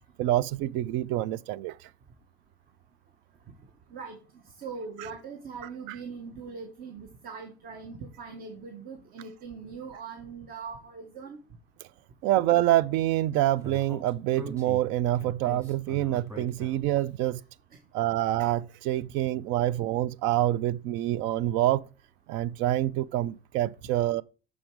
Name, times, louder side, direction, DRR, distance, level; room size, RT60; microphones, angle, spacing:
voice 1, 0.2-1.9 12.2-17.4 17.9-21.9 22.3-24.2, right 14 dB, 75° right, 0.4 m, -26 dB
voice 2, 4.6-11.4, right 5 dB, 50° right, 1.1 m, -41 dB
Speech, 13.6-17.0, right 1 dB, 15° right, 2.3 m, -43 dB
6.3 x 5.1 x 4.6 m
cardioid pair, 130°, 19 cm